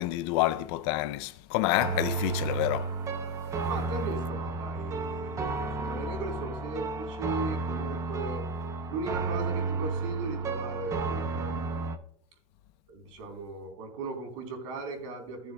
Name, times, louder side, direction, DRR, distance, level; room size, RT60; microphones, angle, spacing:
voice 1, 0.0-2.9, left 16 dB, 45° left, 0.5 m, -28 dB
sound 1, 1.8-12.0, right 4 dB, 15° right, 0.7 m, -32 dB
voice 2, 3.7-8.4 8.9-11.9 12.9-15.5, right 3 dB, 60° right, 3.8 m, -38 dB
15.5 x 7.0 x 2.2 m
supercardioid pair, 165°, 18 cm